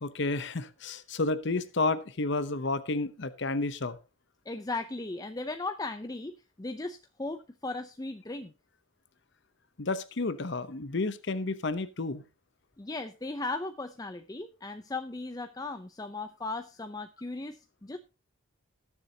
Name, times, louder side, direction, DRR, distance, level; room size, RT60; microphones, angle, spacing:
voice 1, 0.0-4.0 9.8-12.2, left 3 dB, 55° left, 12 dB, 0.8 m, -31 dB
voice 2, 4.5-8.5 12.8-18.0, left 2 dB, 15° left, 8 dB, 0.5 m, -37 dB
19.0 x 7.3 x 2.8 m, 0.31 s
head